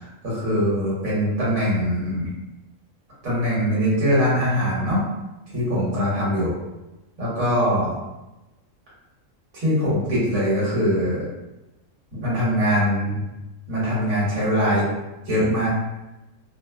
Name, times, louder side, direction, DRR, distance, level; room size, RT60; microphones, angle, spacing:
voice 1, 0.0-2.3 3.2-5.0 5.5-6.5 7.2-7.9 9.5-11.2 12.2-13.2 13.7-14.9 15.3-15.7, equal, 75° right, -8 dB, 1.7 m, -22 dB
3.8 x 2.0 x 2.2 m, 1.0 s
omnidirectional pair, 1.5 m